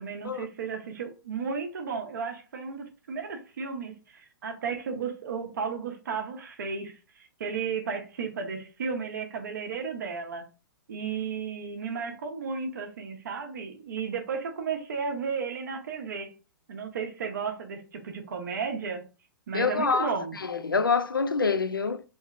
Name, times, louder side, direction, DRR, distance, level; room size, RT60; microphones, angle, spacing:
voice 1, 0.0-10.4 10.9-16.3 16.7-19.0 19.5-20.4, right 5 dB, 60° right, 0.9 m, -34 dB
voice 2, 19.5-20.1 20.5-22.0, left 5 dB, 90° left, 0.4 m, -26 dB
3.1 x 2.8 x 2.5 m
figure-of-eight pair, 115°, 11 cm